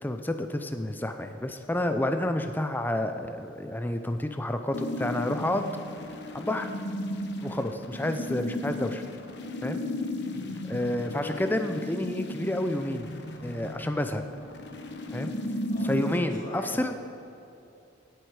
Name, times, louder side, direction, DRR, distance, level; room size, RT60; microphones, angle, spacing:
voice 1, 0.0-5.7 6.3-6.7 7.4-9.0 9.6-9.8 10.7-13.1 13.4-14.2 15.1-15.3 15.8-16.9, left 1 dB, 10° left, 7 dB, 0.5 m, -29 dB
sound 1, 4.7-16.2, left 1 dB, 60° left, 1.1 m, -35 dB
voice 2, 10.2-10.8 15.7-17.0, equal, 45° left, -4 dB, 3.3 m, -42 dB
17.0 x 7.9 x 4.8 m, 2.9 s
head